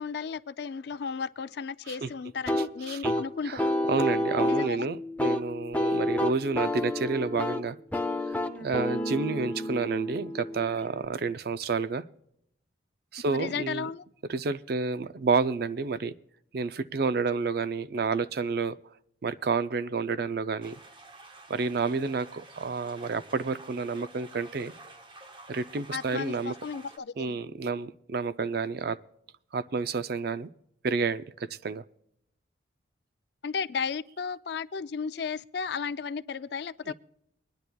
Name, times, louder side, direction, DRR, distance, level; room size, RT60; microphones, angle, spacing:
voice 1, 0.0-3.7 4.5-4.9 13.3-14.0 25.9-27.4 33.4-36.9, left 6 dB, 55° left, 0.4 m, -34 dB
sound 1, 2.5-11.1, left 1 dB, 10° left, 0.6 m, -30 dB
voice 2, 2.9-7.8 8.6-12.0 13.1-13.9 14.3-16.1 16.5-18.8 19.2-20.7 21.5-24.7 25.5-26.5 27.2-29.0 29.5-30.5 30.8-31.8 36.9-37.0, right 4 dB, 50° right, 0.4 m, -30 dB
sound 2, 20.6-27.0, right 2 dB, 25° right, 0.8 m, -50 dB
23.5 x 10.5 x 2.3 m
head